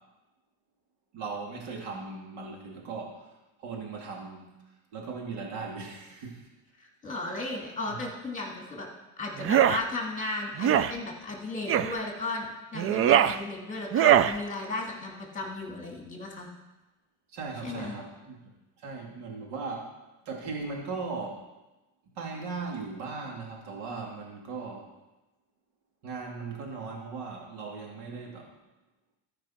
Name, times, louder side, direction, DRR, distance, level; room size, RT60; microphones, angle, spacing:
voice 1, 1.1-3.3 3.6-4.4 4.9-6.5 7.4-8.0 17.3-18.4 18.8-19.9 20.2-21.5 22.1-24.9 26.0-28.5, right 4 dB, 65° right, -1 dB, 2.7 m, -38 dB
voice 2, 7.0-8.9 9.2-16.5 17.6-17.9, left 2 dB, 15° left, 0 dB, 2.6 m, -35 dB
sound 1, 9.4-9.8 10.6-10.9 11.7-11.9 12.7-13.4 13.9-14.3, right 10 dB, 35° right, 0.4 m, -21 dB
13.0 x 5.3 x 5.8 m, 1.0 s
cardioid pair, 120°, 44 cm